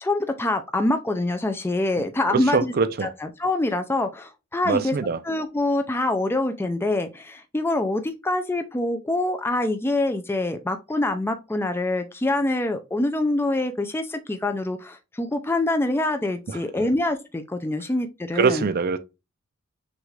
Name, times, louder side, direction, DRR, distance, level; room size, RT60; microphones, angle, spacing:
voice 1, 0.0-2.7 3.0-4.9 5.2-18.6, left 2 dB, 10° left, 0.4 m, -25 dB
voice 2, 2.3-3.1 4.7-5.2 16.5-16.6 18.4-19.0, right 5 dB, 45° right, 0.5 m, -23 dB
6.2 x 2.4 x 3.1 m
head